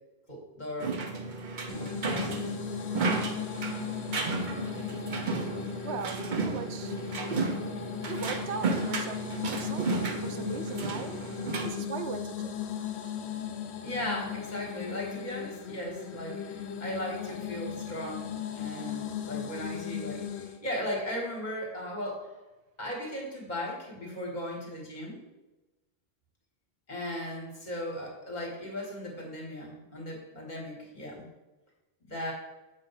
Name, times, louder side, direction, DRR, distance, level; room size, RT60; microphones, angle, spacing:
voice 1, 0.3-1.0 1.8-2.4 13.8-22.3 22.8-25.2 26.9-31.3 32.0-32.3, left 1 dB, 45° left, -2 dB, 1.6 m, -37 dB
sound 1, 0.8-11.7, right 3 dB, 50° right, 0.8 m, -33 dB
sound 2, 1.7-20.6, left 9 dB, 75° left, 0.8 m, -37 dB
voice 2, 5.8-7.0 8.1-9.2 9.5-9.9 10.2-11.1 11.6-12.6, right 6 dB, 80° right, 8 dB, 0.8 m, -38 dB
7.3 x 2.6 x 5.6 m, 1.1 s
omnidirectional pair, 1.1 m